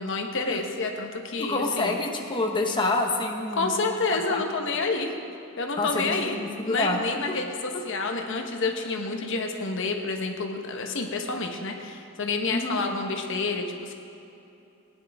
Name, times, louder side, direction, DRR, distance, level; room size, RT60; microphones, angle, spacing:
voice 1, 0.0-2.0 3.5-5.1 5.6-6.4 6.6-13.9, left 3 dB, 65° left, 3 dB, 1.1 m, -29 dB
voice 2, 1.4-3.7 4.1-4.4 5.8-7.0 7.3-7.4 7.7-7.8 12.5-12.8, left 2 dB, 25° left, 1 dB, 1.0 m, -27 dB
19.0 x 10.0 x 3.5 m, 2.8 s
head